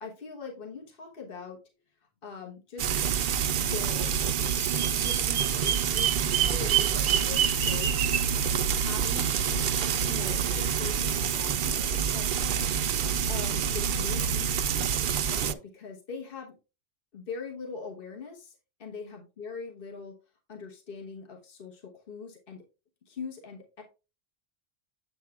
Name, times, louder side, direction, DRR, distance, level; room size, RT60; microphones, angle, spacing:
voice 1, 0.0-1.6 2.2-3.0 3.6-4.1 5.0-8.2 8.7-9.7 10.0-16.6 17.1-20.2 20.5-22.6 23.1-23.8, left 5 dB, 60° left, 0 dB, 1.4 m, -42 dB
Frying (food), 2.8-15.5, right 7 dB, 60° right, 0.7 m, -27 dB
Bird vocalization bird call bird song, 4.5-8.3, right 10 dB, 80° right, 1.0 m, -28 dB
7.8 x 7.7 x 2.4 m, 0.31 s
omnidirectional pair, 1.1 m